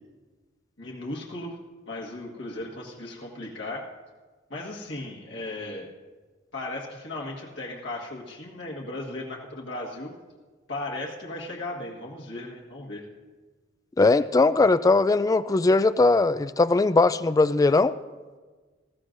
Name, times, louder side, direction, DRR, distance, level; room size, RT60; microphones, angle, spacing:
voice 1, 0.8-1.5 1.9-3.8 4.5-5.9 6.5-10.1 10.7-13.0, left 2 dB, 70° left, -3 dB, 1.7 m, -36 dB
voice 2, 14.0-17.9, left 3 dB, 20° left, 14 dB, 0.3 m, -20 dB
19.0 x 15.5 x 2.6 m, 1.4 s
head